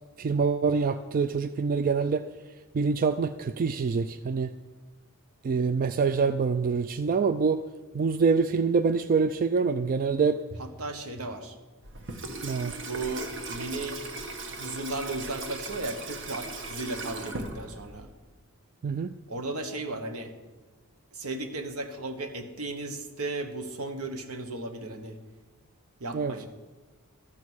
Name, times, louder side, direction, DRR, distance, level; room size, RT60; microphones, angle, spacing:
voice 1, 0.2-2.2 2.7-4.5 5.4-7.6 7.9-10.4 12.4-12.8 18.8-19.1 26.1-26.3, right 5 dB, 40° right, 11 dB, 0.3 m, -25 dB
voice 2, 10.6-11.5 12.9-14.0 14.6-18.1 19.3-20.3 21.1-25.2 26.0-26.5, right 2 dB, 75° right, 7 dB, 1.2 m, -35 dB
Water tap faucet / Sink (filling or washing), 11.8-18.1, right 3 dB, 60° right, 1.2 m, -38 dB
13.0 x 7.4 x 6.2 m, 1.3 s
head